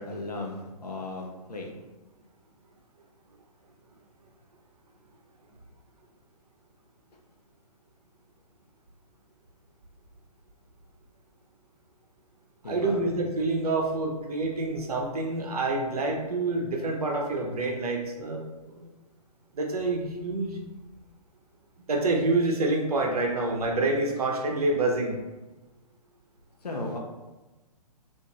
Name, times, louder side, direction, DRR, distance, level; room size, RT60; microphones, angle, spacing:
voice 1, 0.0-1.7 12.6-13.0 26.6-27.0, left 2 dB, 80° left, 1 dB, 0.7 m, -35 dB
voice 2, 12.6-18.4 18.7-18.9 19.5-20.6 21.9-25.2, right 2 dB, 70° right, 1 dB, 0.7 m, -27 dB
2.5 x 2.4 x 2.9 m, 1.1 s
figure-of-eight pair, 130°, 20 cm